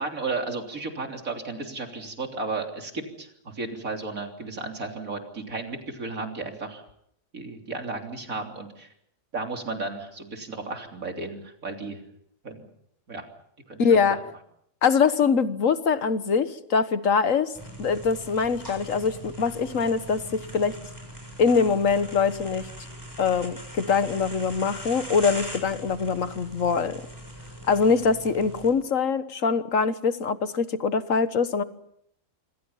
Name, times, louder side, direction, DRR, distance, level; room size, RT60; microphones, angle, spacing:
voice 1, 0.0-6.8 7.3-8.9 9.3-12.0 12.4-12.6 13.1-13.2 13.7-14.2 19.7-19.8, right 3 dB, 85° right, 3 dB, 3.8 m, -34 dB
voice 2, 13.8-14.2 14.8-17.5 17.8-20.8 21.4-22.7 23.2-27.0 27.7-31.6, left 5 dB, 70° left, 12 dB, 1.7 m, -23 dB
sound 1, 17.5-28.7, equal, 15° right, 6.9 m, -41 dB
26.5 x 26.5 x 5.7 m, 0.72 s
omnidirectional pair, 1.4 m